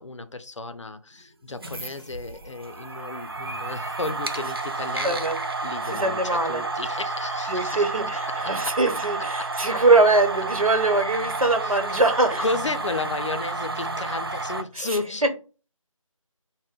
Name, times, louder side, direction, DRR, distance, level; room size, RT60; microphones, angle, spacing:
voice 1, 0.0-5.3 5.6-8.8 9.4-9.5 11.6-11.8 12.4-15.3, left 3 dB, 60° left, 0.5 m, -33 dB
sound 1, 1.5-14.6, right 3 dB, 45° right, 0.4 m, -31 dB
voice 2, 5.0-5.4 5.9-6.6 7.5-12.4 14.8-15.0, right 3 dB, 85° right, 1.0 m, -22 dB
4.1 x 2.1 x 3.6 m
figure-of-eight pair, 165°, 18 cm